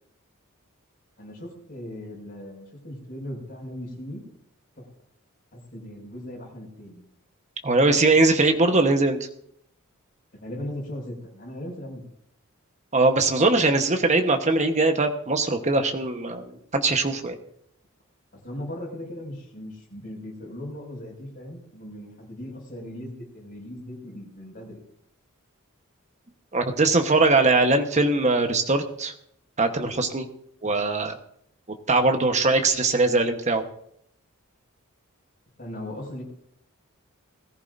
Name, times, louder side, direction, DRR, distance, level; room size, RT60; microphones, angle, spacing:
voice 1, 1.2-4.2 4.8-4.9 5.5-7.0 10.3-12.0 18.3-24.8 30.6-30.7 35.6-36.2, left 1 dB, 40° left, -3 dB, 6.2 m, -38 dB
voice 2, 7.6-9.3 12.9-17.4 26.5-29.1 29.6-30.3 30.6-31.1 31.9-33.6, right 3 dB, 35° right, 6 dB, 1.2 m, -21 dB
20.5 x 14.5 x 2.7 m, 0.70 s
head